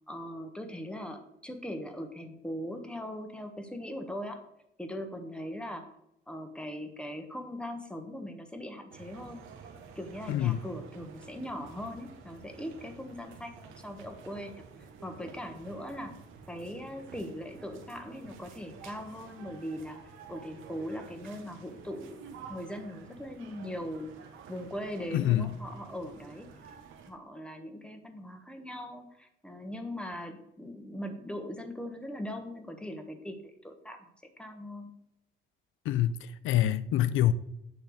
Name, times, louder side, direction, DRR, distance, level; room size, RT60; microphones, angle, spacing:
voice 1, 0.1-4.4 4.8-6.0 6.3-9.4 9.9-14.6 15.0-16.1 16.5-20.0 20.3-22.2 22.5-24.1 24.5-26.5 27.1-34.0 34.4-34.9, equal, 5° left, 1.3 m, -40 dB
sound 1, 8.9-27.1, right 6 dB, 90° right, 1.2 m, -51 dB
voice 2, 10.3-10.6 25.1-25.5 35.9-37.3, left 12 dB, 80° left, 0.4 m, -26 dB
9.0 x 3.3 x 6.5 m
cardioid pair, 90°, 20 cm